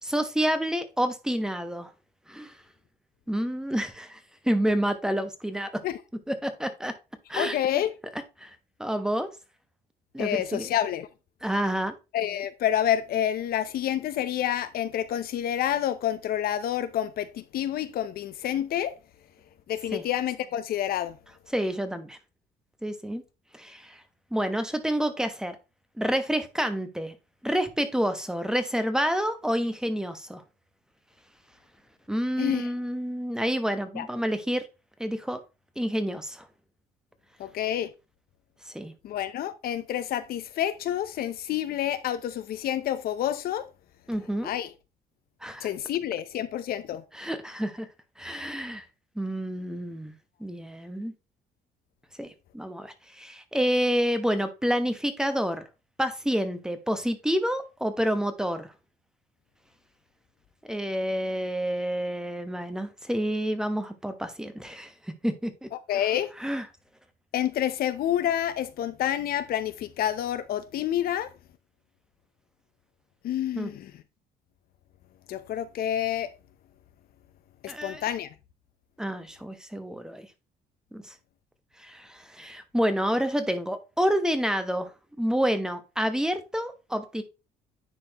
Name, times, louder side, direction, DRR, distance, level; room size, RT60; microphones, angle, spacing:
voice 1, 0.0-1.9 2.3-2.5 3.3-4.2 4.4-5.8 6.3-7.0 7.3-7.6 8.4-9.3 10.1-10.7 11.4-11.9 19.9-20.0 21.5-22.2 22.8-23.2 23.5-24.0 24.3-25.6 26.0-27.1 27.4-30.4 32.1-34.7 35.0-35.4 35.8-36.5 38.7-38.9 44.1-44.5 45.4-45.7 47.1-47.9 48.2-48.8 49.2-50.1 50.4-51.1 52.2-55.6 56.0-58.7 60.7-65.7 66.4-66.6 73.6-73.7 77.7-78.0 79.0-80.3 80.9-81.1 81.8-84.9 85.2-87.2, equal, 5° right, 1.1 m, -28 dB
voice 2, 7.4-7.9 10.2-11.1 12.1-18.9 19.7-21.2 32.4-32.7 34.0-34.1 37.4-37.9 39.0-43.7 44.4-44.7 45.6-47.0 65.7-66.3 67.3-71.3 73.2-73.9 75.3-76.3 77.6-78.3, left 11 dB, 65° left, 0.7 m, -28 dB
10.0 x 4.3 x 2.9 m
cardioid pair, 110°, 17 cm